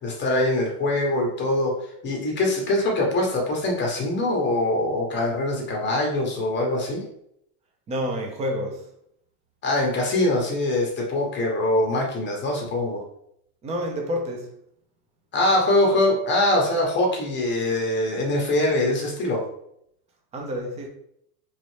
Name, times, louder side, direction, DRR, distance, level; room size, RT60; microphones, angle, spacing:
voice 1, 0.0-7.0 9.6-13.0 15.3-19.4, left 1 dB, 25° left, 1.0 m, -23 dB
voice 2, 7.9-8.8 13.6-14.5 20.3-20.9, equal, 15° right, 0.5 m, -28 dB
4.0 x 3.2 x 3.2 m
supercardioid pair, 135°, 46 cm